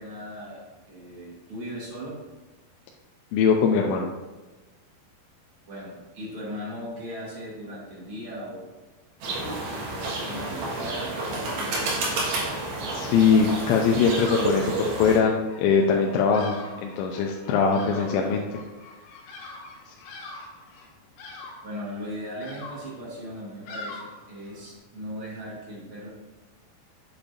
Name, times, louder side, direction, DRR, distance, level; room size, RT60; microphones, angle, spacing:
voice 1, 0.0-2.2 5.7-8.7 9.4-12.4 17.9-18.5 21.6-26.1, equal, 75° right, -5 dB, 1.2 m, -38 dB
voice 2, 3.3-4.1 12.9-18.4, left 5 dB, 85° left, 1 dB, 2.8 m, -22 dB
sound 1, 9.2-15.2, right 2 dB, 55° right, 2.7 m, -30 dB
Bird vocalization bird call bird song, 13.8-24.8, left 3 dB, 70° left, 3.1 m, -43 dB
8.5 x 7.4 x 2.6 m, 1.2 s
omnidirectional pair, 5.1 m